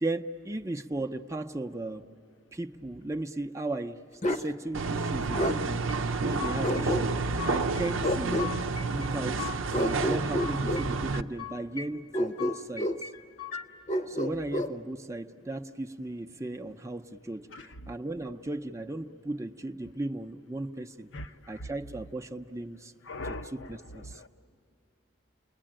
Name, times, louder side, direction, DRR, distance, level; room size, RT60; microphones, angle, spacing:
voice 1, 0.0-2.0 2.5-4.0 4.3-5.8 6.2-8.5 8.9-12.9 14.1-21.1 21.5-22.9 23.5-24.2, right 2 dB, 15° right, 0.6 m, -36 dB
Bark, 4.2-4.5 5.4-5.6 6.6-7.4 8.0-8.5 9.7-10.9 12.1-13.0 13.9-14.7, left 1 dB, 35° left, 0.8 m, -29 dB
sound 1, 4.7-11.2, right 4 dB, 75° right, 0.7 m, -30 dB
sound 2, 5.9-6.9 7.1-7.9 8.1-9.6 9.9-10.9 11.1-11.9 12.1-13.7, left 9 dB, 90° left, 1.4 m, -41 dB
voice 2, 17.5-17.9 21.1-21.7 23.0-24.3, left 1 dB, 65° left, 0.7 m, -41 dB
29.5 x 21.5 x 8.9 m
head